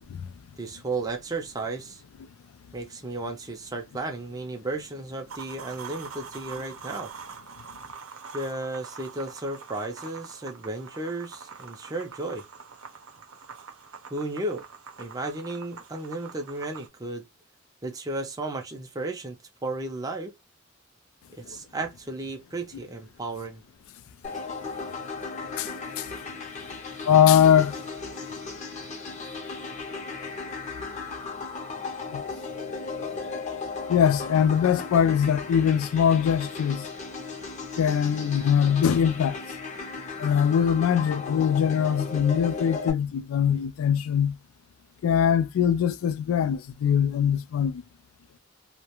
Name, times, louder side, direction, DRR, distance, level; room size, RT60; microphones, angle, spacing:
voice 1, 0.6-2.0 2.7-7.1 8.3-12.4 14.1-14.6 15.0-17.3 17.8-19.4 19.6-20.3 21.3-23.6, right 2 dB, 20° right, 0.4 m, -34 dB
sound 1, 5.3-16.9, right 5 dB, 90° right, 0.6 m, -44 dB
sound 2, 24.2-42.9, left 4 dB, 35° left, 0.6 m, -36 dB
voice 2, 27.0-27.7 32.1-32.4 33.9-36.9 37.8-39.4 40.2-44.4 45.0-47.8, left 8 dB, 90° left, 0.3 m, -22 dB
2.3 x 2.1 x 2.9 m
head